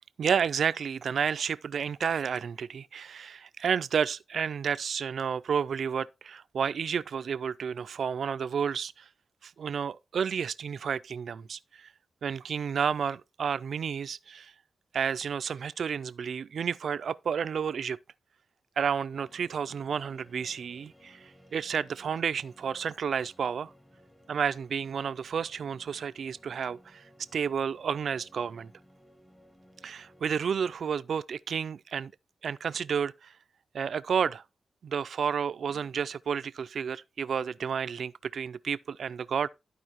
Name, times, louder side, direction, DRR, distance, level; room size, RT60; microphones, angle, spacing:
voice 1, 0.2-9.1 9.4-11.9 12.2-14.5 14.9-18.0 18.8-23.7 24.3-27.0 27.3-28.7 29.8-32.1 32.4-33.3 33.7-34.4 34.8-39.5, right 7 dB, 70° right, 0.3 m, -31 dB
sound 1, 19.1-30.8, equal, 5° left, 1.1 m, -59 dB
13.0 x 4.9 x 2.9 m
wide cardioid pair, 120°, 0 cm